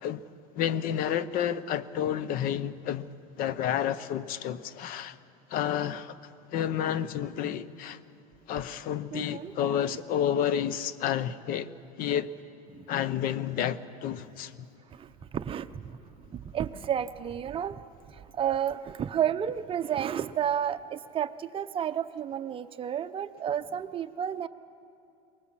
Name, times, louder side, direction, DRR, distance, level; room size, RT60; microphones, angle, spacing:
voice 1, 0.5-3.1 3.4-5.2 5.5-6.2 6.5-8.0 8.5-11.7 12.0-12.3 12.9-14.5, left 9 dB, 55° left, 0.9 m, -30 dB
voice 2, 9.1-9.8 12.7-12.9 14.9-16.0 16.3-17.8 18.1-24.5, right 9 dB, 30° right, 0.8 m, -31 dB
23.0 x 19.5 x 7.5 m
supercardioid pair, 115°, 18 cm